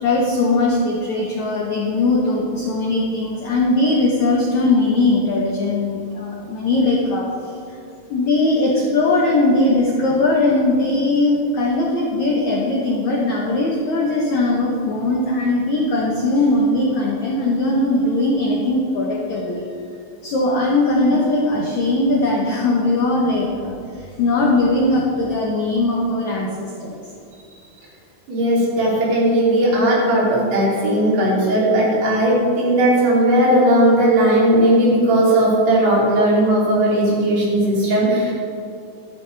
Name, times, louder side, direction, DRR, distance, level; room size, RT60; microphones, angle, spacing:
voice 1, 0.0-7.3 7.7-7.8 8.1-19.6 20.2-27.0, left 2 dB, 70° left, -2 dB, 1.7 m, -19 dB
voice 2, 28.3-38.3, right 1 dB, 70° right, -6 dB, 5.2 m, -17 dB
13.0 x 12.5 x 3.4 m, 2.5 s
omnidirectional pair, 5.0 m